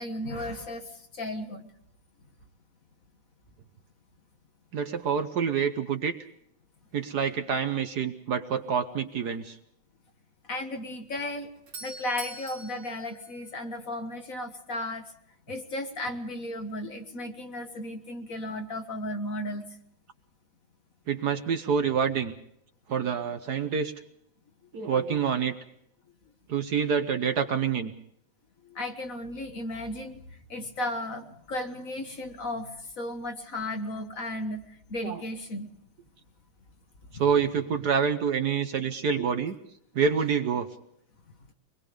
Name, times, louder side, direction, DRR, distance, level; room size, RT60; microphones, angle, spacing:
voice 1, 0.0-1.7 10.4-11.5 11.8-15.1 15.5-19.7 26.2-26.3 28.6-35.7 37.1-37.2, left 1 dB, 45° left, 5 dB, 1.7 m, -35 dB
voice 2, 4.7-6.2 6.9-9.6 21.1-22.3 22.9-23.9 24.7-25.5 26.5-27.9 35.0-35.2 37.2-39.6 39.9-40.7, right 6 dB, 60° right, 8 dB, 1.4 m, -27 dB
Doorbell, 11.3-14.1, right 3 dB, 80° right, 2.9 m, -44 dB
24.0 x 21.0 x 5.2 m, 0.71 s
omnidirectional pair, 2.2 m